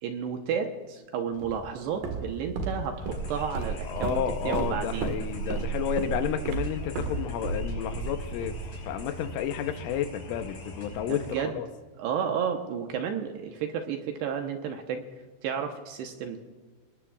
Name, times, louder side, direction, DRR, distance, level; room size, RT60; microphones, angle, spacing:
voice 1, 0.0-5.1 11.1-11.6 12.0-15.0 15.4-16.4, right 7 dB, 70° right, 4 dB, 2.8 m, -32 dB
Walk footsteps, 1.4-9.3, right 4 dB, 55° right, 2.8 m, -34 dB
sound 1, 3.0-11.3, equal, 50° left, 6.4 m, -42 dB
voice 2, 3.9-8.6 8.8-11.7, left 9 dB, 90° left, 8 dB, 3.4 m, -31 dB
27.5 x 19.5 x 2.5 m, 1.4 s
omnidirectional pair, 5.6 m